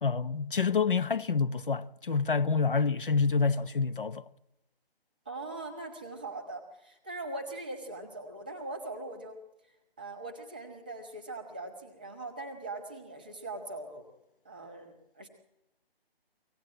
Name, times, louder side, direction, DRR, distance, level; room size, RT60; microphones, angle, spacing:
voice 1, 0.0-4.2, left 5 dB, 55° left, 0.9 m, -27 dB
voice 2, 5.2-14.1 14.4-15.3, right 2 dB, 10° right, 1.2 m, -41 dB
24.5 x 17.0 x 8.9 m
hypercardioid pair, 180°, 31 cm